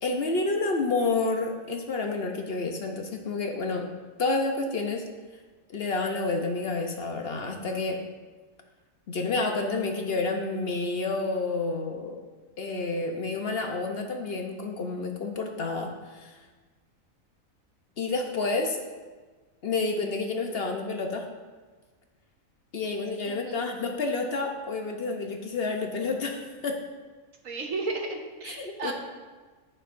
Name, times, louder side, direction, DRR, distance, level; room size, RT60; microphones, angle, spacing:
voice 1, 0.0-3.9 4.2-5.0 5.7-8.0 9.1-12.2 12.6-16.4 18.0-18.8 19.6-21.3 22.7-26.8 28.4-28.9, left 3 dB, 55° left, 3 dB, 0.8 m, -29 dB
voice 2, 23.2-23.6 27.4-28.9, right 3 dB, 70° right, 2 dB, 1.5 m, -34 dB
14.5 x 6.5 x 2.5 m, 1.4 s
omnidirectional pair, 1.4 m